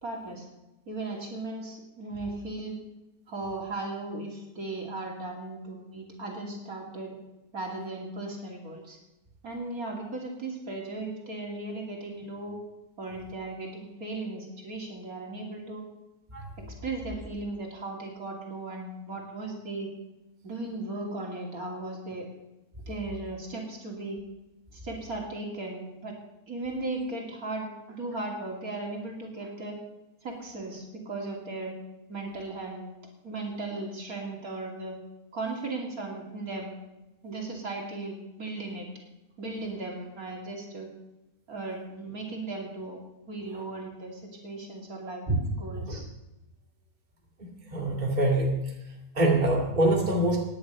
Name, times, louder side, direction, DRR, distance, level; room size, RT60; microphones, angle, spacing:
voice 1, 0.0-0.4 0.9-2.8 3.3-7.2 7.5-9.0 9.4-12.6 13.0-15.8 16.6-19.9 20.4-22.3 22.9-24.2 24.7-26.2 26.5-29.8 30.2-31.7 32.1-32.9 33.2-34.9 35.3-36.8 37.2-38.9 39.4-40.9 41.5-43.0 43.3-45.2 45.6-46.1, right 2 dB, 65° right, 0 dB, 3.2 m, -36 dB
voice 2, 47.7-48.6 49.1-50.4, right 1 dB, 30° right, -1 dB, 2.4 m, -24 dB
16.5 x 10.5 x 5.4 m, 0.96 s
omnidirectional pair, 1.6 m